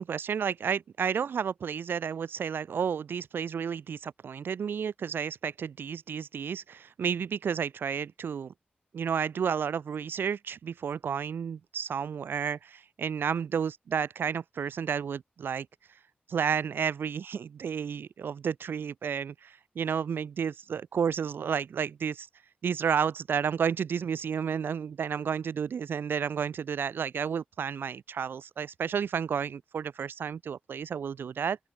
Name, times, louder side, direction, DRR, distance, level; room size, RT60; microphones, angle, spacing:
voice 1, 0.0-8.5 8.9-15.7 16.3-22.3 22.6-31.6, right 7 dB, 85° right, 0.6 m, -31 dB
open air
cardioid pair, 75°, 4 cm